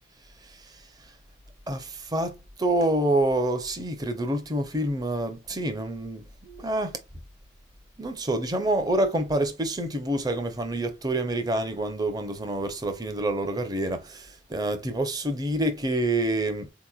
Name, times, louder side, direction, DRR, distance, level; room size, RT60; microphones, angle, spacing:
voice 1, 0.4-0.8 1.7-7.0 8.0-16.7, right 1 dB, 20° right, 0.6 m, -27 dB
4.2 x 2.9 x 2.3 m
head